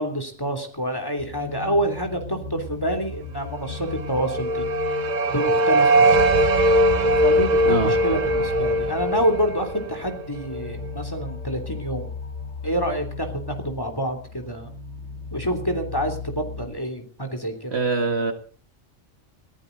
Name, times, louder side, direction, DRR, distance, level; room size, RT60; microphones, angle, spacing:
voice 1, 0.0-4.6 5.3-6.1 6.9-12.1 12.6-14.7 15.3-17.8, equal, 15° left, 5 dB, 3.1 m, -27 dB
sound 1, 1.2-16.7, left 4 dB, 70° left, 7.1 m, -36 dB
sound 2, 3.9-10.9, right 1 dB, 35° right, 0.9 m, -21 dB
voice 2, 17.7-18.3, right 3 dB, 50° right, 6 dB, 1.9 m, -23 dB
21.0 x 16.0 x 4.0 m, 0.43 s
omnidirectional pair, 1.4 m